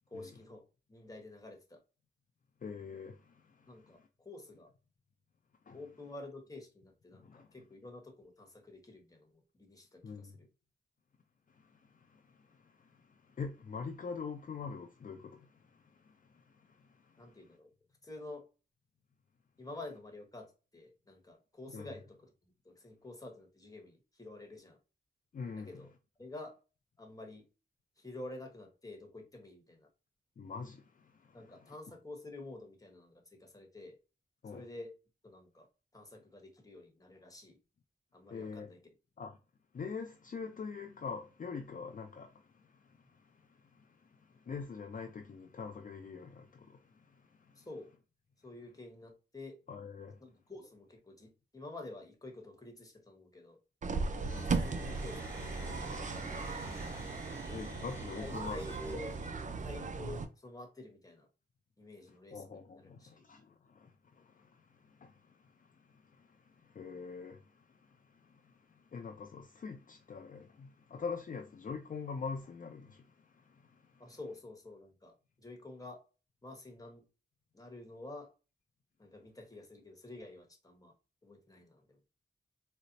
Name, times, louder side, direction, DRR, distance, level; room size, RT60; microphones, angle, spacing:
voice 1, 0.1-0.6 0.9-1.8 3.6-4.7 5.7-10.5 17.2-17.7 18.0-18.4 19.6-20.5 20.7-24.8 25.6-25.9 26.2-26.5 27.0-27.5 28.0-29.9 31.3-34.0 34.5-34.9 35.2-35.7 35.9-37.6 38.1-38.8 47.6-47.9 48.4-49.5 50.2-53.6 54.1-55.8 57.3-57.7 58.2-59.2 59.6-61.3 61.8-63.2 74.0-75.1 75.4-76.0 76.4-77.0 77.5-78.3 79.0-80.9 81.2-82.0, left 2 dB, 20° left, 1.1 m, -49 dB
voice 2, 2.6-4.1 5.7-5.8 7.1-7.5 10.0-10.3 11.5-17.4 21.7-21.9 25.3-25.9 30.4-31.7 34.4-34.6 38.3-38.7 39.2-39.4 39.7-47.7 49.7-50.2 53.9-54.3 56.9-58.6 62.1-74.2, left 5 dB, 45° left, 0.4 m, -45 dB
sound 1, 53.8-60.3, right 4 dB, 40° right, 0.4 m, -37 dB
sound 2, 54.1-59.8, right 1 dB, 15° right, 1.6 m, -48 dB
4.0 x 2.1 x 2.6 m
cardioid pair, 70°, 19 cm